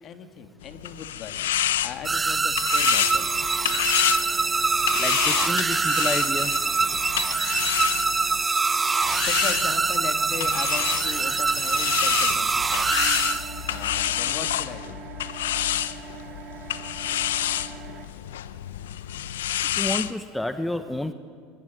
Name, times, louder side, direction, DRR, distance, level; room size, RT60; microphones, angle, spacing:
voice 1, 0.0-1.4 1.8-3.3 9.2-13.0 13.7-15.0, left 7 dB, 45° left, 8 dB, 2.5 m, -38 dB
sound 1, 0.6-8.4 9.0-20.1, left 12 dB, 90° left, 0.9 m, -28 dB
sound 2, 2.0-13.9, right 4 dB, 20° right, 0.9 m, -24 dB
sound 3, 3.0-18.1, right 8 dB, 45° right, 2.6 m, -44 dB
voice 2, 5.0-6.5 19.8-21.1, left 1 dB, 5° left, 9 dB, 1.3 m, -30 dB
22.5 x 21.5 x 9.5 m, 2.1 s
supercardioid pair, 105°, 0 cm